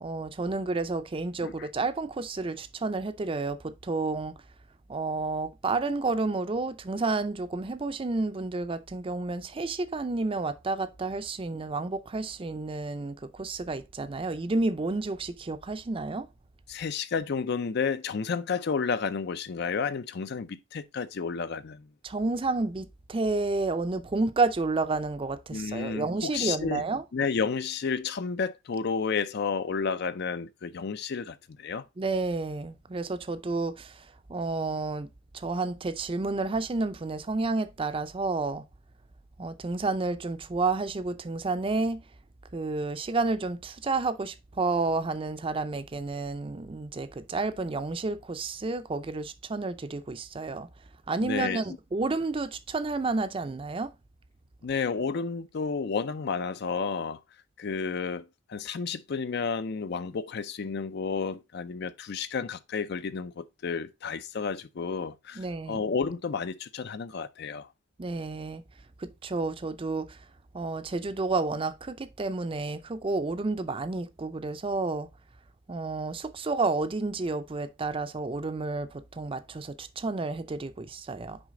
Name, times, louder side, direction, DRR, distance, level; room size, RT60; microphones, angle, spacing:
voice 1, 0.0-4.4 4.9-16.3 22.0-27.0 32.0-38.6 39.4-42.0 42.5-50.7 51.1-53.9 65.3-65.8 68.0-68.6 69.0-70.2 70.5-75.1 75.7-81.4, right 3 dB, 30° right, 0.5 m, -30 dB
voice 2, 16.7-21.9 25.5-26.8 27.1-31.8 51.2-51.6 54.6-57.2 57.6-67.7, left 5 dB, 60° left, 0.5 m, -31 dB
6.2 x 4.8 x 3.7 m
head